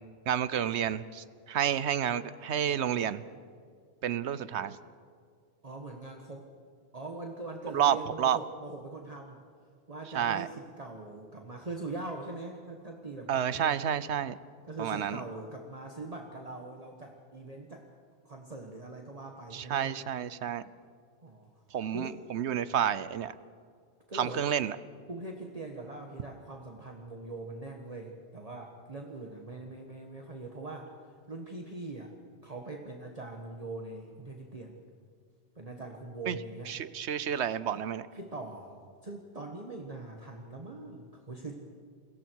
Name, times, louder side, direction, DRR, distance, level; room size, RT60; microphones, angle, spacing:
voice 1, 0.3-3.2 4.0-4.8 7.7-8.4 10.1-10.5 13.3-14.4 14.8-15.2 19.5-20.6 21.7-23.3 24.1-24.8 36.3-36.4 36.7-38.1, right 9 dB, 75° right, 16 dB, 1.0 m, -30 dB
voice 2, 5.6-6.5 6.9-9.4 9.9-13.8 14.7-17.9 18.2-20.0 21.2-21.5 21.9-22.2 24.1-24.5 25.1-31.0 31.3-32.1 32.4-34.8 35.5-36.7 38.1-41.5, right 2 dB, 35° right, 1 dB, 1.6 m, -42 dB
28.5 x 22.5 x 4.7 m, 2.2 s
omnidirectional pair, 1.2 m